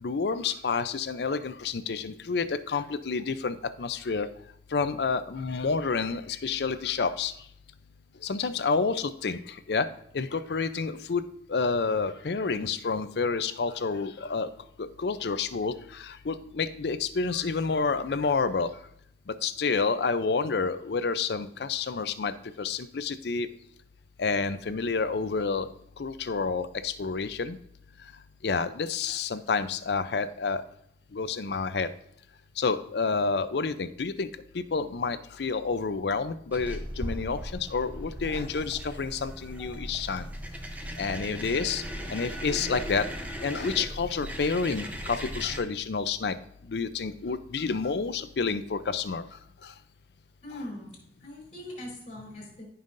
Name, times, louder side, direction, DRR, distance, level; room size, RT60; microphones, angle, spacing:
voice 1, 0.0-4.3 4.7-7.3 8.2-9.9 10.1-11.2 11.5-14.5 14.8-18.7 19.3-23.5 24.2-25.7 26.0-27.6 28.4-30.6 31.1-31.9 32.6-34.3 34.5-37.4 37.7-40.3 41.0-41.8 42.1-43.1 43.4-46.4 46.7-49.2 49.6-49.7, left 4 dB, 60° left, 12 dB, 0.5 m, -29 dB
sound 1, 36.5-45.6, equal, 10° right, 0.8 m, -37 dB
voice 2, 50.4-50.9 51.2-52.6, left 1 dB, 35° left, -3 dB, 3.8 m, -41 dB
15.0 x 5.5 x 2.6 m, 0.71 s
head